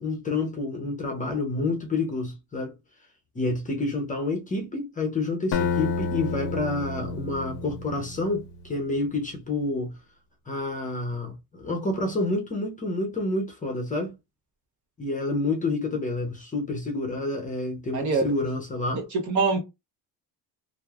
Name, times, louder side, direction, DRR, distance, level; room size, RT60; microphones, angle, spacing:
voice 1, 0.0-2.7 3.3-10.0 10.5-14.2 15.0-19.0, left 2 dB, 20° left, 0.7 m, -29 dB
Acoustic guitar, 5.5-8.5, left 4 dB, 70° left, 0.6 m, -30 dB
voice 2, 17.9-18.3 18.9-19.6, right 4 dB, 45° right, 0.9 m, -24 dB
3.0 x 2.1 x 2.3 m
cardioid pair, 115°, 42 cm